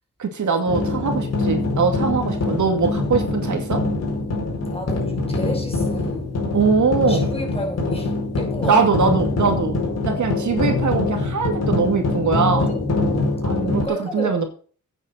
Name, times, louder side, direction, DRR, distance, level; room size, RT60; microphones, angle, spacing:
voice 1, 0.2-3.8 6.5-7.3 8.7-9.8 10.0-12.7 13.4-14.4, right 5 dB, 70° right, 4 dB, 2.3 m, -21 dB
sound 1, 0.7-13.9, left 2 dB, 55° left, 4.5 m, -24 dB
voice 2, 4.7-6.4 7.1-8.8 10.1-10.3 12.5-12.9 13.6-14.5, left 1 dB, 20° left, 1 dB, 5.9 m, -32 dB
9.1 x 7.9 x 6.7 m, 0.43 s
wide cardioid pair, 100°, 31 cm